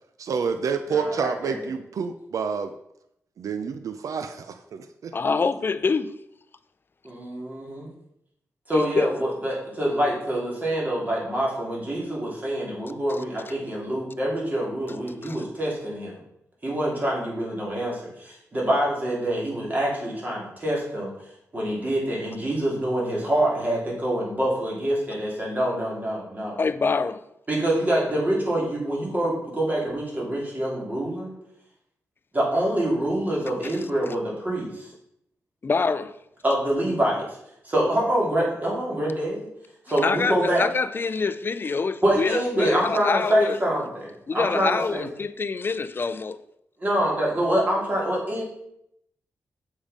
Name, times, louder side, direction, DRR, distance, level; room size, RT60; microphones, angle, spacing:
voice 1, 0.2-2.7 3.4-5.2, right 5 dB, 70° right, 0.5 m, -28 dB
voice 2, 0.9-1.7 7.0-7.9 8.7-16.2 16.6-21.1 21.5-26.6 27.5-31.3 32.3-34.9 36.4-37.4 37.6-39.5 39.9-40.6 42.0-45.0 46.8-48.4, right 1 dB, 30° right, 3.1 m, -25 dB
voice 3, 5.1-6.1 8.7-9.1 15.2-15.4 26.6-27.2 35.6-36.1 40.0-43.6 44.3-46.4, left 4 dB, 40° left, 0.5 m, -25 dB
7.2 x 5.1 x 5.2 m
cardioid pair, 90°, 6 cm